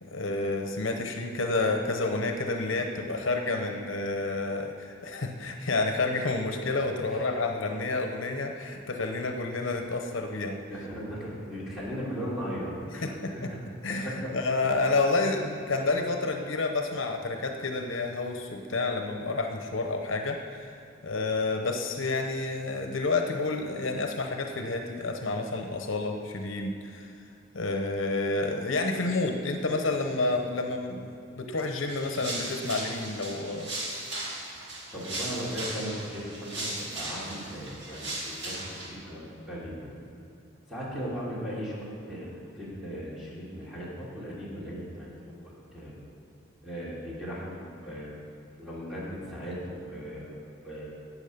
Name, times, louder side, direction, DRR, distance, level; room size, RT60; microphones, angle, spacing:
voice 1, 0.0-10.6 13.0-13.5 13.8-20.7 21.0-27.1 27.5-33.7, left 3 dB, 75° left, 4 dB, 0.9 m, -29 dB
voice 2, 10.7-13.5 13.9-14.3 34.9-39.9 40.7-42.3 42.5-45.4 45.7-46.0 46.6-48.1 48.6-50.4 50.6-50.9, equal, ahead, -8 dB, 3.1 m, -37 dB
sound 1, 31.9-38.9, right 1 dB, 60° right, 2.2 m, -37 dB
12.5 x 8.5 x 5.2 m, 2.6 s
head